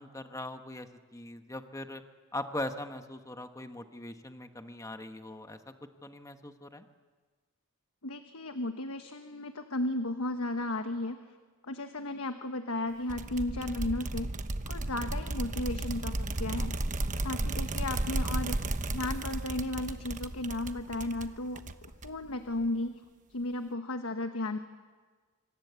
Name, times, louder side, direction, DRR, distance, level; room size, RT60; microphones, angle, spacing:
voice 1, 0.0-2.0 2.3-5.7 6.0-6.9, left 1 dB, 15° left, 7 dB, 1.2 m, -40 dB
voice 2, 8.0-11.2 11.7-14.3 14.7-16.8 17.2-18.6 18.9-21.6 22.0-23.0 23.3-24.6, left 2 dB, 85° left, 7 dB, 1.3 m, -34 dB
sound 1, 13.1-22.3, right 2 dB, 35° right, 1.1 m, -34 dB
26.5 x 25.5 x 8.2 m, 1.4 s
head